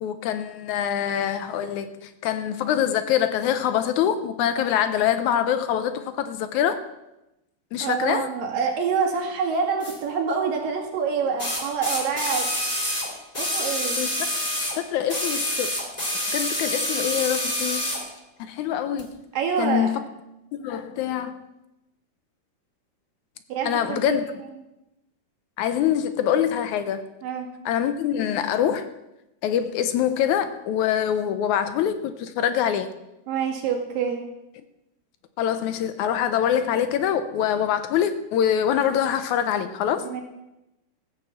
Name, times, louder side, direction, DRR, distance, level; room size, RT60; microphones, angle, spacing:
voice 1, 0.0-6.8 7.7-8.3 14.0-14.3 14.8-15.7 16.3-17.9 18.4-19.2 19.6-20.0 20.5-21.4 23.7-24.3 25.6-27.1 27.7-28.9 29.4-32.9 35.4-40.1, left 9 dB, 80° left, 11 dB, 1.9 m, -24 dB
voice 2, 7.8-12.5 13.4-14.0 19.3-20.0 23.5-24.3 27.2-27.5 33.3-34.2 40.0-40.2, right 6 dB, 90° right, 2 dB, 3.6 m, -26 dB
sound 1, 9.8-9.9 11.4-14.8 15.1-18.0 19.0-19.1, left 1 dB, 15° left, 1.8 m, -27 dB
14.5 x 6.9 x 7.2 m, 0.93 s
omnidirectional pair, 3.9 m